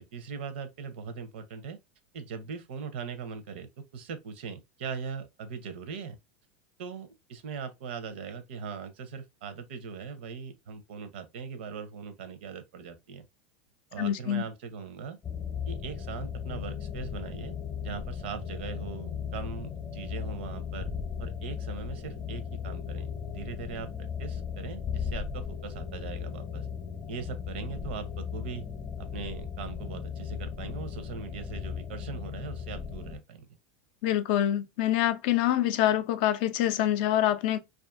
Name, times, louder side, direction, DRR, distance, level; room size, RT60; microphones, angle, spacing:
voice 1, 0.0-1.8 2.1-6.2 6.8-13.2 13.9-15.2 15.7-17.5 17.8-20.9 21.2-23.1 23.3-26.7 27.1-28.6 29.0-33.5, right 6 dB, 80° right, 0.6 m, -40 dB
voice 2, 14.0-14.4 34.0-37.6, left 12 dB, 60° left, 0.4 m, -26 dB
sound 1, 15.2-33.2, left 7 dB, 25° left, 0.7 m, -37 dB
2.5 x 2.4 x 2.4 m
supercardioid pair, 140°, 6 cm